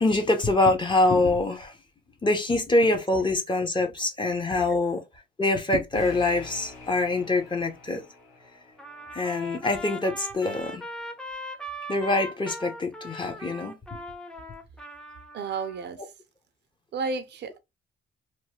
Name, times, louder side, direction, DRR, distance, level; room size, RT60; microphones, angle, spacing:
voice 1, 0.0-1.7 2.2-5.0 5.4-8.0 9.1-10.8 11.9-13.8, left 2 dB, 25° left, 0.8 m, -24 dB
sound 1, 5.9-9.4, left 1 dB, 85° left, 1.3 m, -45 dB
Trumpet, 8.8-15.9, equal, 5° left, 0.6 m, -40 dB
voice 2, 15.3-16.0 16.9-17.6, right 4 dB, 60° right, 0.5 m, -31 dB
3.0 x 2.1 x 2.9 m
cardioid pair, 90°, 20 cm